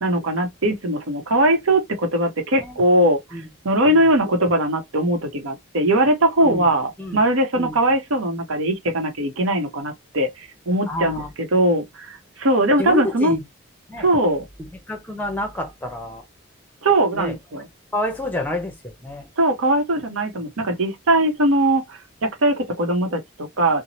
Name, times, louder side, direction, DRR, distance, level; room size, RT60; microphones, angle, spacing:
voice 1, 0.0-11.2 11.5-13.4 14.0-14.4 16.8-17.6 19.4-23.8, right 1 dB, 90° right, 0.8 m, -20 dB
voice 2, 10.9-11.3 12.8-13.4 13.9-14.1 14.6-16.3 17.1-17.6 17.9-19.3, equal, 10° left, 0.6 m, -29 dB
2.7 x 2.0 x 2.9 m
head